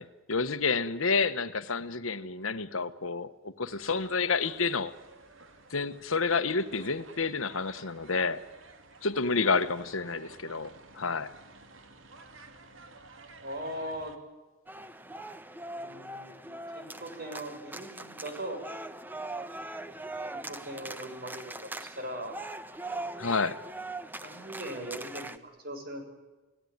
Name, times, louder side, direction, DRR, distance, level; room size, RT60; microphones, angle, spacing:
voice 1, 0.0-4.9 5.7-8.4 9.0-11.3 23.2-23.6, left 4 dB, 75° left, 12 dB, 1.2 m, -29 dB
sound 1, 3.7-14.2, right 3 dB, 65° right, 2.5 m, -52 dB
voice 2, 13.4-14.1 15.7-18.6 20.2-22.4 24.2-26.0, right 1 dB, 45° right, 5 dB, 6.5 m, -40 dB
sound 2, 14.7-25.4, right 2 dB, 10° right, 1.0 m, -41 dB
29.5 x 18.0 x 9.5 m, 1.2 s
head